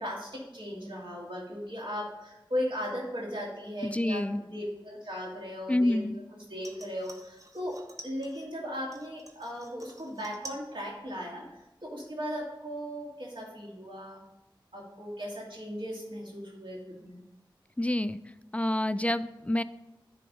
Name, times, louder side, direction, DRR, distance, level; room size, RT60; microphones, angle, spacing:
voice 1, 0.0-6.0 6.3-14.2 14.7-17.2, equal, 70° right, -3 dB, 2.6 m, -37 dB
voice 2, 3.8-4.4 5.7-6.2 17.8-18.2 18.5-19.6, left 1 dB, 15° left, 14 dB, 0.3 m, -27 dB
sound 1, 6.6-8.5 8.9-10.7 11.0-11.6 11.9-12.0, right 2 dB, 40° right, 1.1 m, -49 dB
10.5 x 3.9 x 5.1 m, 0.99 s
wide cardioid pair, 50°, 9 cm